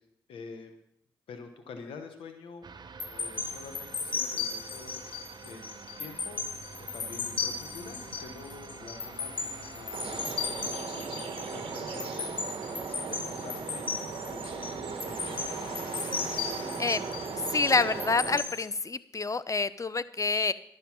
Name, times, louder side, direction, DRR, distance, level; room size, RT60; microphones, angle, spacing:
voice 1, 0.3-0.7 1.3-2.7 3.1-6.4 6.8-15.7, left 4 dB, 90° left, 7 dB, 1.0 m, -47 dB
sound 1, 2.6-10.7, right 5 dB, 55° right, 0.8 m, -47 dB
sound 2, 3.0-18.7, left 5 dB, 70° left, 1.4 m, -37 dB
sound 3, 9.9-18.4, right 5 dB, 80° right, 1.1 m, -37 dB
voice 2, 17.4-20.5, left 4 dB, 35° left, 16 dB, 0.6 m, -27 dB
11.5 x 7.9 x 6.0 m, 0.79 s
supercardioid pair, 40°, 9 cm